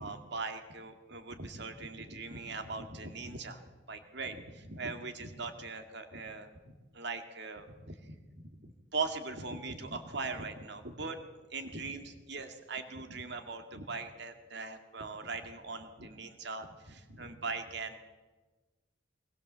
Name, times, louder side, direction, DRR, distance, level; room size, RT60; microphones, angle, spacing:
voice 1, 0.0-3.6 3.9-8.2 8.6-11.2 11.5-18.0, right 3 dB, 55° right, 6 dB, 2.3 m, -40 dB
22.5 x 20.0 x 7.5 m, 1.2 s
head